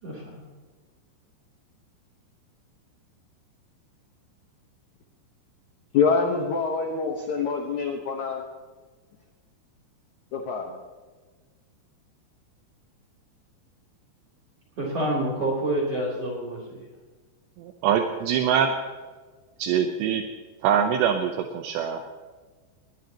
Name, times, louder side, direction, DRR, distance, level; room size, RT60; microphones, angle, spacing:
voice 1, 0.0-0.4 14.8-16.8, right 1 dB, 35° right, -4 dB, 3.9 m, -28 dB
voice 2, 5.9-8.4 10.3-10.8, left 5 dB, 75° left, 2 dB, 1.7 m, -25 dB
voice 3, 17.6-18.7 19.6-20.2 20.6-22.1, right 8 dB, 75° right, 4 dB, 2.9 m, -24 dB
21.0 x 20.0 x 3.0 m, 1.4 s
omnidirectional pair, 5.3 m